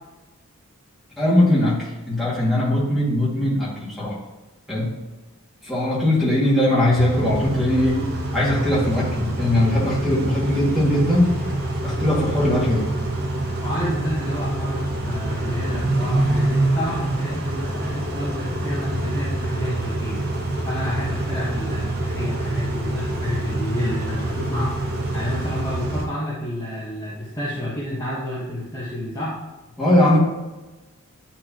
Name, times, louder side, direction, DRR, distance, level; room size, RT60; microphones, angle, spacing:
voice 1, 1.2-4.2 4.7-4.9 5.6-8.0 8.3-11.4 11.8-12.9 29.8-30.2, left 1 dB, ahead, -8 dB, 2.1 m, -20 dB
Car / Idling / Accelerating revving vroom, 6.9-26.0, right 2 dB, 45° right, 1.1 m, -26 dB
voice 2, 13.6-20.2 20.6-29.3, left 1 dB, 20° left, -9 dB, 1.3 m, -29 dB
9.6 x 4.3 x 3.0 m, 1.1 s
head